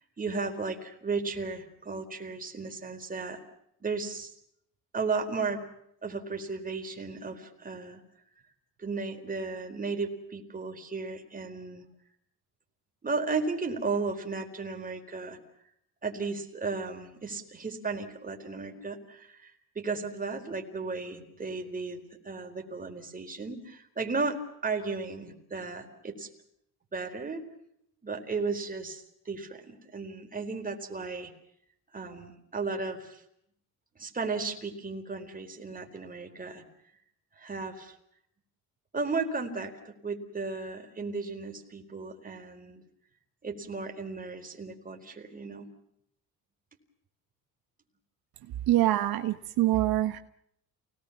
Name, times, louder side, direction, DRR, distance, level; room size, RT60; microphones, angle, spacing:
voice 1, 0.2-3.4 3.8-4.3 4.9-5.6 6.0-8.0 8.8-11.8 13.0-15.4 16.0-26.3 26.9-27.4 28.0-31.3 31.9-33.2 34.0-36.6 37.4-37.9 38.9-42.8 43.4-45.7, right 4 dB, 20° right, 3 dB, 4.4 m, -35 dB
voice 2, 48.7-50.2, right 14 dB, 70° right, 8 dB, 1.3 m, -25 dB
29.5 x 19.0 x 7.3 m, 0.74 s
cardioid pair, 115°, 37 cm